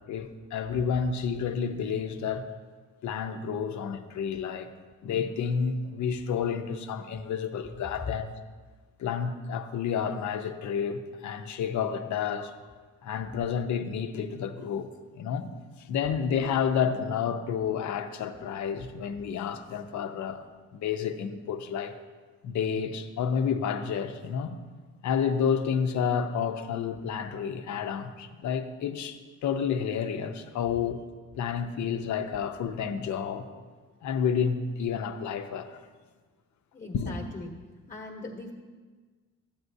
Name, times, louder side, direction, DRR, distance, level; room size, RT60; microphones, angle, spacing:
voice 1, 0.1-2.5 3.0-4.7 5.0-8.3 9.0-12.5 13.0-14.9 15.2-15.5 15.9-20.4 20.7-21.9 22.4-24.6 25.0-31.0 31.4-33.5 34.0-35.8 36.9-37.2, left 7 dB, 70° left, 0.7 m, -30 dB
voice 2, 36.7-37.5 37.9-38.5, left 2 dB, 25° left, 1.1 m, -40 dB
12.5 x 8.7 x 2.7 m
cardioid pair, 90°, 30 cm